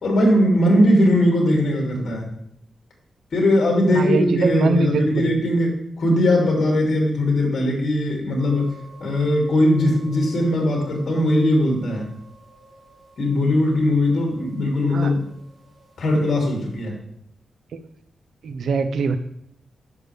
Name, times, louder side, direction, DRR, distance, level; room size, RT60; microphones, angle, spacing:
voice 1, 0.0-2.3 3.3-8.7 9.0-12.1 13.2-15.2 16.0-17.0, left 1 dB, 55° left, -1 dB, 2.8 m, -19 dB
voice 2, 3.9-5.2 14.9-15.1 18.4-19.2, right 4 dB, 75° right, 9 dB, 0.7 m, -22 dB
sound 1, 8.4-16.9, right 2 dB, 30° right, 3.5 m, -50 dB
10.5 x 6.5 x 3.4 m, 0.69 s
wide cardioid pair, 145°, 0 cm